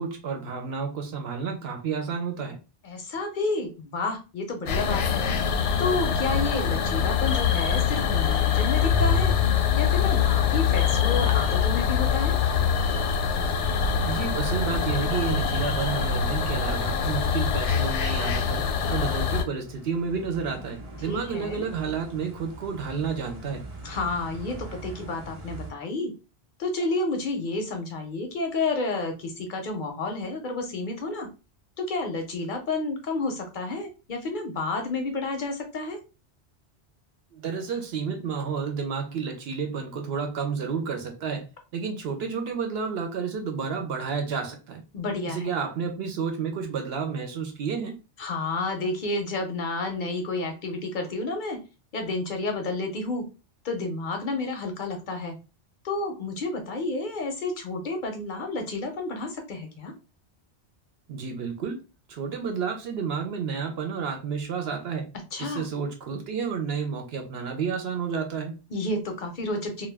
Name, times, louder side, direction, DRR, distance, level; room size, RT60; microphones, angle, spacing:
voice 1, 0.0-2.6 14.0-23.6 37.3-44.8 45.3-47.9 61.1-61.8 62.1-65.1 65.4-68.5, right 6 dB, 70° right, 0.7 m, -31 dB
voice 2, 2.8-5.2 5.8-9.3 9.7-12.4 21.0-21.7 23.8-26.1 26.6-31.3 31.8-36.0 44.9-45.5 48.2-51.6 51.9-53.3 53.6-55.4 55.8-59.9 65.3-65.6 68.7-69.9, left 3 dB, 55° left, 0.6 m, -30 dB
sound 1, 4.7-19.4, left 7 dB, 85° left, 0.9 m, -24 dB
sound 2, 18.9-25.7, right 1 dB, 35° right, 0.8 m, -42 dB
2.2 x 2.1 x 3.3 m
omnidirectional pair, 1.2 m